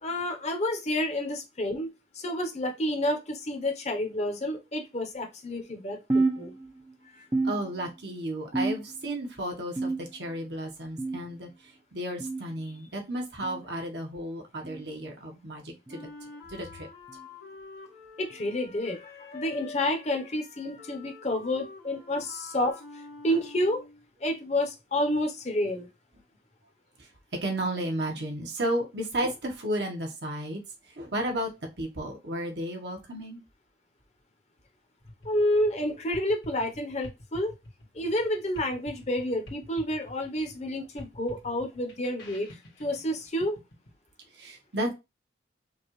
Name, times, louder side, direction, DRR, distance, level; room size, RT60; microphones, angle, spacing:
voice 1, 0.0-1.9 2.1-6.5 7.1-7.2 18.2-22.8 23.2-23.8 24.2-25.9 35.2-37.5 37.9-42.5 42.8-43.6, left 1 dB, 35° left, 4 dB, 0.8 m, -29 dB
sound 1, 6.1-6.9 7.3-8.1 8.5-9.1 9.8-10.4 11.0-11.4 12.2-12.4 13.4-13.6 14.6-14.8 15.9-16.0 17.1-17.3 18.3-18.5 19.5-19.6 20.7-20.8, right 3 dB, 20° right, 0.6 m, -30 dB
voice 2, 7.4-11.5 11.9-16.0 16.5-16.9 22.1-22.2 27.4-30.6 31.0-31.5 31.8-33.4 44.4-44.9, right 1 dB, 65° right, 2 dB, 1.1 m, -33 dB
Wind instrument woodwind instrument, 15.9-24.1, left 3 dB, 55° left, 1.1 m, -47 dB
sound 2, 35.0-43.9, left 1 dB, 80° left, 1.6 m, -48 dB
5.2 x 2.4 x 3.1 m, 0.24 s
head